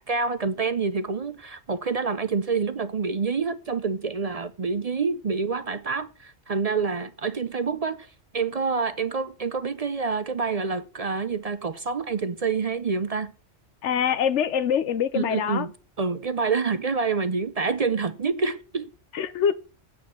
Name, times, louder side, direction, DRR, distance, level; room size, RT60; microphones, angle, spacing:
voice 1, 0.1-8.1 8.3-13.3 15.1-15.7 16.0-18.9, right 4 dB, 50° right, 0.5 m, -27 dB
voice 2, 13.8-15.7 19.1-19.5, left 8 dB, 70° left, 1.0 m, -24 dB
8.6 x 5.5 x 7.7 m
omnidirectional pair, 1.3 m